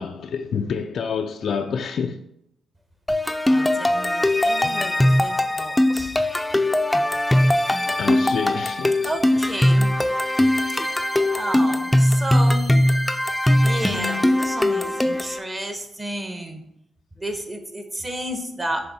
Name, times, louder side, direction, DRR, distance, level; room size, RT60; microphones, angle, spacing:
voice 1, 0.0-2.2 7.9-9.8, left 6 dB, 70° left, 0.3 m, -28 dB
sound 1, 3.1-15.4, left 1 dB, 10° left, 0.5 m, -20 dB
voice 2, 3.5-6.1 9.0-9.9 11.3-12.8 13.6-16.6 17.2-18.8, right 1 dB, 20° right, 1.1 m, -31 dB
6.8 x 3.4 x 4.2 m
cardioid pair, 80°, 0 cm